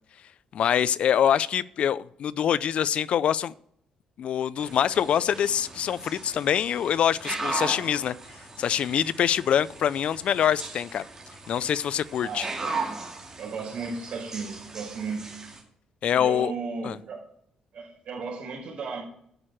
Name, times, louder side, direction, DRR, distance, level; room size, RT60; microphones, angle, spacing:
voice 1, 0.5-3.5 4.2-8.1 8.6-11.1 11.5-12.5 16.0-16.5 16.8-17.0, left 9 dB, 55° left, 0.4 m, -24 dB
sound 1, 4.6-15.6, right 3 dB, 25° right, 2.3 m, -37 dB
voice 2, 12.2-12.8 13.4-15.3 16.2-17.3 17.7-19.0, right 4 dB, 55° right, 4.7 m, -35 dB
9.8 x 6.5 x 7.5 m
cardioid pair, 135°, 2 cm